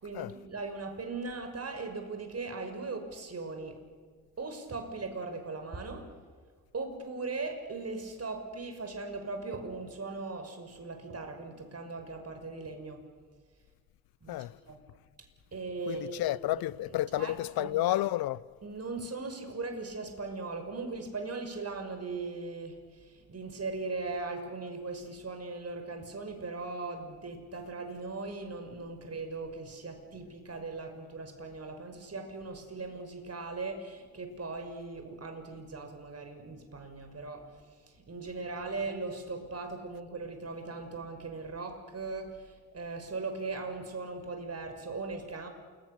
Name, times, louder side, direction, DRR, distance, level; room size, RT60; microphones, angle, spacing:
voice 1, 0.0-3.8 4.4-6.1 6.7-13.0 14.2-14.8 15.5-16.4 17.2-17.3 17.6-18.0 18.6-37.5 38.1-42.5 42.7-45.5, right 3 dB, 35° right, 5.8 m, -39 dB
voice 2, 15.9-18.4, left 15 dB, 60° left, 0.8 m, -31 dB
28.5 x 22.0 x 6.8 m
hypercardioid pair, 50°, 42 cm